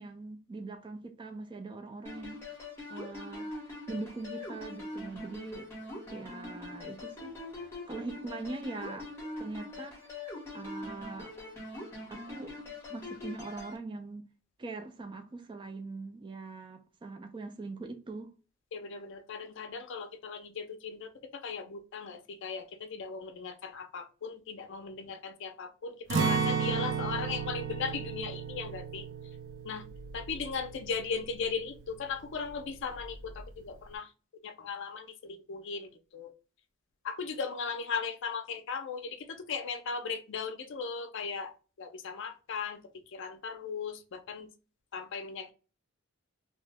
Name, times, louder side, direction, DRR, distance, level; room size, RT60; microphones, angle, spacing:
voice 1, 0.0-2.4 2.9-5.7 6.1-7.4 7.9-9.1 9.4-10.2 10.5-11.3 12.1-12.6 12.9-14.3 14.6-18.3, right 3 dB, 25° right, 0.3 m, -42 dB
sound 1, 2.0-13.8, left 2 dB, 10° left, 0.9 m, -43 dB
voice 2, 18.7-29.1 29.6-29.9 30.1-34.1 34.4-36.3 37.0-42.8 43.1-44.5 44.9-45.5, left 5 dB, 60° left, 0.5 m, -37 dB
Acoustic guitar, 26.1-32.0 32.3-32.5 33.0-33.4, right 5 dB, 60° right, 0.6 m, -34 dB
2.8 x 2.0 x 3.3 m
head